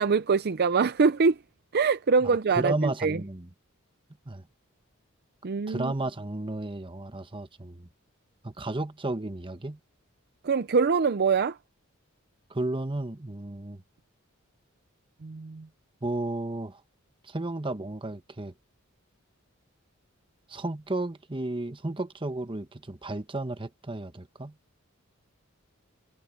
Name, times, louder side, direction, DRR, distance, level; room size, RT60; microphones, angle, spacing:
voice 1, 0.0-1.4 1.7-3.2 5.4-5.9 10.4-11.6 15.2-15.7, right 5 dB, 50° right, 0.5 m, -24 dB
voice 2, 2.6-3.5 4.3-4.4 5.7-7.9 8.4-9.8 12.5-13.8 16.0-16.8 17.2-18.5 20.5-24.5, right 2 dB, 25° right, 1.2 m, -33 dB
head